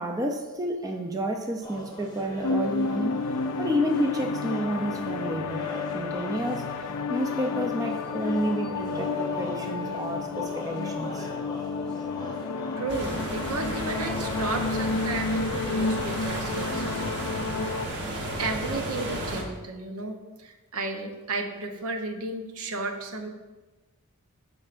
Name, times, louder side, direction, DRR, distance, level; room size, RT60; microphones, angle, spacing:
voice 1, 0.0-3.2 3.6-5.7 5.9-11.3, equal, 15° right, 3 dB, 0.4 m, -30 dB
sound 1, 1.6-14.9, left 1 dB, 20° left, 0.8 m, -41 dB
sound 2, 2.4-17.9, left 4 dB, 85° left, 0.4 m, -31 dB
voice 2, 12.8-17.2 18.2-23.3, right 3 dB, 75° right, 5 dB, 0.7 m, -33 dB
sound 3, 12.9-19.4, right 1 dB, 55° right, 1.1 m, -33 dB
11.5 x 4.4 x 2.5 m, 1.2 s
head